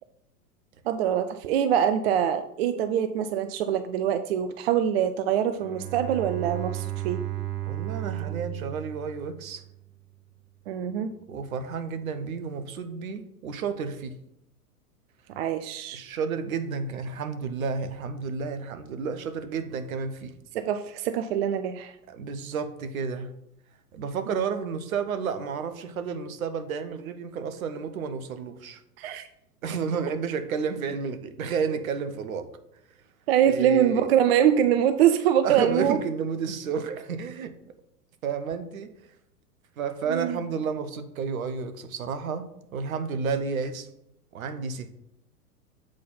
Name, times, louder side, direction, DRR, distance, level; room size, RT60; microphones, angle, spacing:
voice 1, 0.9-7.2 10.7-11.1 15.3-16.0 20.5-21.9 29.0-29.3 33.3-36.0 40.1-40.4, right 9 dB, 45° right, 0.5 m, -24 dB
Bowed string instrument, 5.6-9.9, right 15 dB, 85° right, 0.7 m, -34 dB
voice 2, 7.7-9.6 11.3-14.2 15.9-20.3 22.1-23.3 23.9-28.8 29.6-32.5 33.4-34.0 35.4-37.5 38.2-38.9 39.8-43.9 44.3-44.9, right 5 dB, 60° right, 1.0 m, -31 dB
7.7 x 4.2 x 5.5 m
figure-of-eight pair, 100°, 46 cm